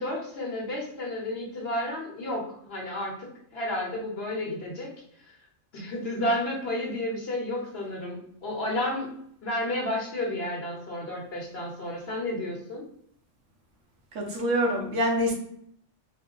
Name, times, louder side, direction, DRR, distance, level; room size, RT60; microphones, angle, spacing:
voice 1, 0.0-4.9 5.7-9.1 9.4-12.8, left 1 dB, 55° left, -1 dB, 1.2 m, -31 dB
voice 2, 14.1-15.3, equal, 80° right, 0 dB, 1.4 m, -25 dB
4.3 x 2.2 x 3.8 m, 0.67 s
omnidirectional pair, 1.3 m